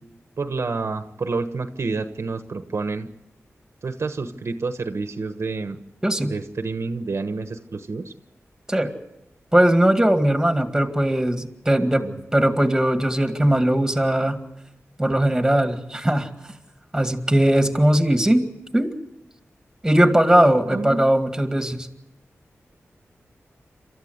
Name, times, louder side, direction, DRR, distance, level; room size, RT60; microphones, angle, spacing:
voice 1, 0.4-3.1 3.8-5.8 6.2-8.1 12.0-12.2 20.7-21.0, right 3 dB, 65° right, 8 dB, 1.2 m, -29 dB
voice 2, 9.5-14.4 15.0-16.3 16.9-18.5 18.7-18.9 19.8-21.9, right 1 dB, 10° right, 6 dB, 2.1 m, -19 dB
28.0 x 13.5 x 8.1 m, 0.90 s
wide cardioid pair, 85°, 5 cm